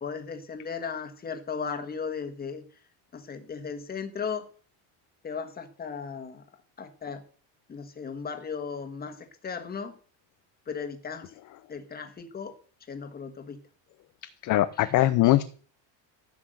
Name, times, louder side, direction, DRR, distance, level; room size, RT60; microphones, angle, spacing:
voice 1, 0.0-2.6 3.1-4.5 5.2-6.4 6.8-7.2 7.7-10.0 10.7-11.3 11.7-12.6 12.9-13.6 14.8-14.9, left 6 dB, 20° left, 7 dB, 1.6 m, -36 dB
voice 2, 14.4-15.4, left 15 dB, 40° left, 13 dB, 0.7 m, -21 dB
14.5 x 5.9 x 7.8 m, 0.42 s
cardioid pair, 170°, 45 cm